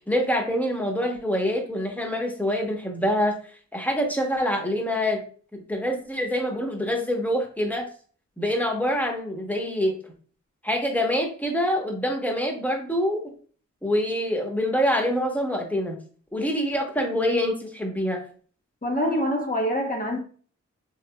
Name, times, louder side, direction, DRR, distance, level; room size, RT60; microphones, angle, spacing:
voice 1, 0.1-3.4 3.7-5.2 5.5-7.9 8.4-9.9 10.6-13.2 13.8-16.0 16.3-18.2, equal, 5° left, 1.1 m, -25 dB
voice 2, 18.8-20.2, equal, 25° left, 0.8 m, -25 dB
3.0 x 2.9 x 2.2 m
cardioid pair, 40°, 31 cm